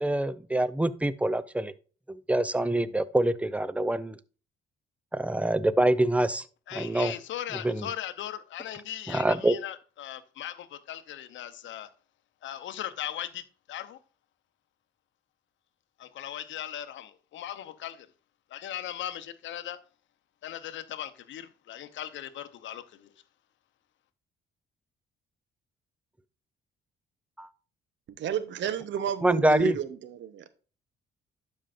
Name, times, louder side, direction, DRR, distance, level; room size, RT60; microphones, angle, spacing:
voice 1, 0.0-1.7 2.1-4.2 5.1-6.4 6.7-7.1 7.6-7.8 9.1-9.5 27.4-27.5 29.2-29.7, right 1 dB, 5° right, 0.5 m, -25 dB
voice 2, 6.7-11.9 12.4-14.0 16.0-18.1 18.5-19.8 20.4-23.1, left 11 dB, 75° left, 0.8 m, -38 dB
voice 3, 28.2-30.6, right 8 dB, 70° right, 0.8 m, -32 dB
12.0 x 5.3 x 2.5 m
cardioid pair, 90°, 20 cm